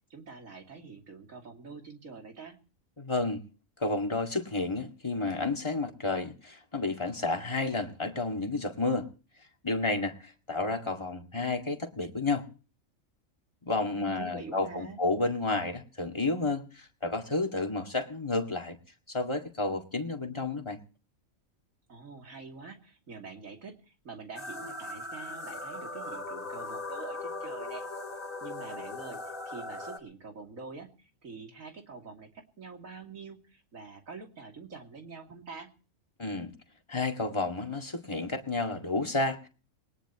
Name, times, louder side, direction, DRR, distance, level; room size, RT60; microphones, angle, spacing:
voice 1, 0.1-2.6 13.9-15.0 21.9-27.9 28.4-35.7, right 4 dB, 80° right, 3 dB, 3.1 m, -45 dB
voice 2, 3.0-3.4 3.8-9.1 9.6-12.5 13.7-18.8 19.1-20.8 36.2-36.5 36.9-39.5, left 3 dB, 20° left, 3 dB, 2.0 m, -31 dB
sound 1, 24.4-30.0, left 2 dB, 40° left, 2.7 m, -39 dB
21.0 x 19.5 x 3.0 m, 0.37 s
omnidirectional pair, 1.4 m